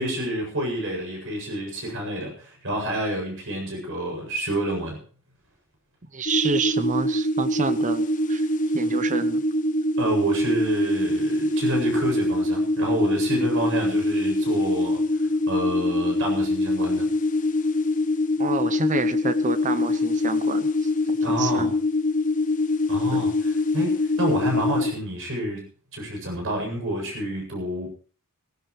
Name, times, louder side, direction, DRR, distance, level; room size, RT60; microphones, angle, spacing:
voice 1, 0.0-5.0 10.0-15.2 15.5-17.1 21.2-21.7 22.9-25.6 25.9-27.9, right 1 dB, 60° right, 2 dB, 7.9 m, -29 dB
voice 2, 6.1-8.5 8.7-9.4 18.4-21.7 23.1-23.3, right 4 dB, 35° right, 12 dB, 0.8 m, -28 dB
sound 1, 6.3-24.9, left 1 dB, 35° left, 1.0 m, -24 dB
18.5 x 18.0 x 3.3 m, 0.41 s
head